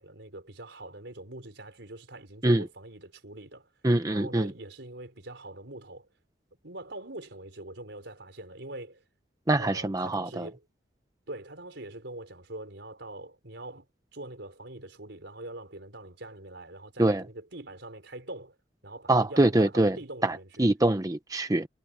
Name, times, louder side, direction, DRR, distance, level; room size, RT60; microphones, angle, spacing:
voice 1, 0.0-3.7 4.1-6.1 6.6-9.0 9.6-10.6 11.3-13.9 14.1-18.6 18.8-20.7, right 1 dB, 75° right, 4.5 m, -43 dB
voice 2, 3.8-4.5 9.5-10.5 17.0-17.2 19.1-20.0 20.2-21.7, right 1 dB, 20° right, 0.7 m, -24 dB
head